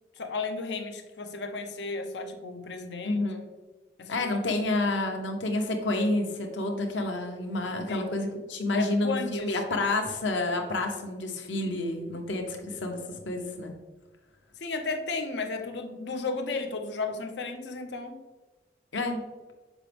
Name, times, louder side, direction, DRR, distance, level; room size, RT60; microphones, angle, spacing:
voice 1, 0.2-3.3 4.0-4.8 7.9-8.1 8.8-9.6 14.6-18.2, left 3 dB, 70° left, 6 dB, 0.7 m, -34 dB
voice 2, 3.0-3.4 4.1-13.0 13.2-13.7 18.9-19.2, left 2 dB, 90° left, 3 dB, 1.0 m, -29 dB
7.3 x 5.0 x 3.5 m, 1.2 s
head